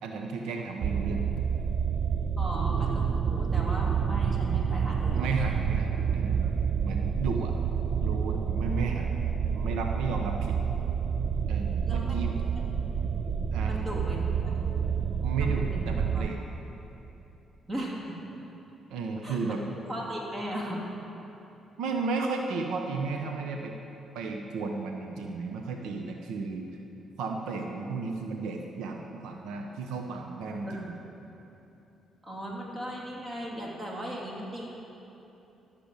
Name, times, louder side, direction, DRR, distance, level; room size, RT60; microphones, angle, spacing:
voice 1, 0.0-1.2 5.1-6.5 6.8-7.6 8.0-9.1 9.5-10.6 11.5-12.4 13.5-13.7 15.2-16.4 18.9-19.6 21.8-23.7 24.1-26.7 27.2-30.9, right 4 dB, 90° right, 3 dB, 0.8 m, -33 dB
sound 1, 0.8-16.3, right 7 dB, 55° right, 0.4 m, -28 dB
voice 2, 2.4-5.3 11.9-12.1 13.7-14.2 14.4-14.9 15.4-16.2 17.7-18.2 19.2-20.8 30.7-31.0 32.2-34.7, equal, 30° right, -3 dB, 2.9 m, -37 dB
13.0 x 6.9 x 8.3 m, 3.0 s
cardioid pair, 90°, 0 cm